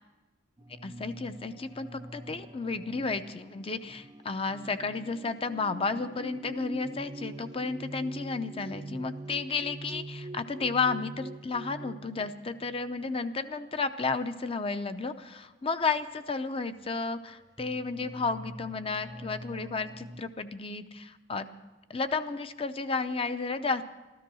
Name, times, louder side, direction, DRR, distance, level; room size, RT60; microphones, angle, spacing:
sound 1, 0.6-12.9 13.7-14.0 15.1-15.2 15.8-16.0 16.7-20.2, right 1 dB, 25° right, 0.6 m, -44 dB
voice 1, 0.8-21.5 21.9-23.8, left 4 dB, 30° left, 10 dB, 0.7 m, -32 dB
13.5 x 13.5 x 6.2 m, 1.2 s
head